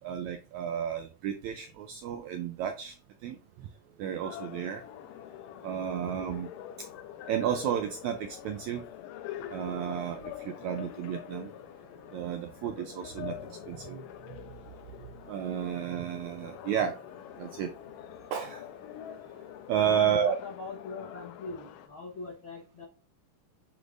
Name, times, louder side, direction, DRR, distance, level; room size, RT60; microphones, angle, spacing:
voice 1, 0.0-2.9 3.2-3.7 4.0-4.8 5.6-6.5 7.3-8.8 9.5-11.5 12.1-14.0 15.3-17.0 17.4-17.7 18.3-18.6 19.7-20.4, right 9 dB, 80° right, 7 dB, 1.6 m, -32 dB
sound 1, 4.2-21.9, left 11 dB, 85° left, 2.2 m, -45 dB
voice 2, 19.7-22.9, left 3 dB, 65° left, -2 dB, 1.2 m, -42 dB
7.9 x 5.2 x 2.5 m, 0.35 s
omnidirectional pair, 3.9 m